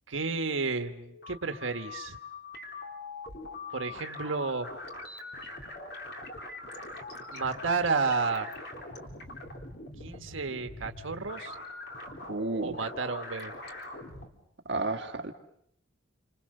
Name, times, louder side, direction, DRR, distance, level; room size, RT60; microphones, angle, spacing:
voice 1, 0.1-2.2 3.7-4.7 7.3-8.5 10.0-11.5 12.6-13.5, right 4 dB, 85° right, 6 dB, 1.4 m, -31 dB
sound 1, 1.0-14.3, left 2 dB, 55° left, 3.5 m, -43 dB
voice 2, 12.3-12.8 14.7-15.3, right 2 dB, 60° right, 5 dB, 1.8 m, -31 dB
28.0 x 26.5 x 6.6 m, 0.72 s
head